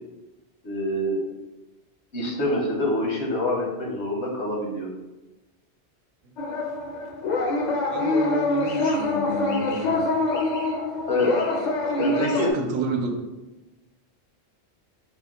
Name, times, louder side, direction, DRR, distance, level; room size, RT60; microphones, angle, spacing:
voice 1, 0.6-1.2 2.1-4.9 11.1-11.5 12.0-12.5, left 1 dB, 80° left, -1 dB, 1.1 m, -26 dB
sound 1, 6.4-12.5, left 2 dB, 55° left, 0.5 m, -25 dB
voice 2, 7.9-10.0 12.0-13.2, right 3 dB, 75° right, 4 dB, 0.8 m, -31 dB
4.5 x 2.1 x 3.6 m, 1.0 s
omnidirectional pair, 1.1 m